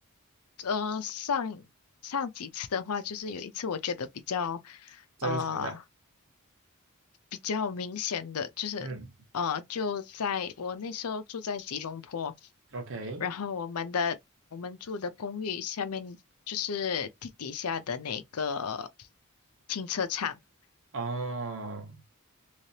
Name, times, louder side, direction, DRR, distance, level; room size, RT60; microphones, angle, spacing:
voice 1, 0.6-1.7 2.0-5.8 7.4-8.9 9.3-12.3 13.2-14.2 14.5-16.2 16.5-18.9 19.7-20.4, left 6 dB, 75° left, 0.6 m, -33 dB
voice 2, 5.2-5.8 8.8-9.1 12.7-13.3 20.9-22.0, right 3 dB, 60° right, 1.0 m, -35 dB
3.3 x 3.2 x 2.8 m
head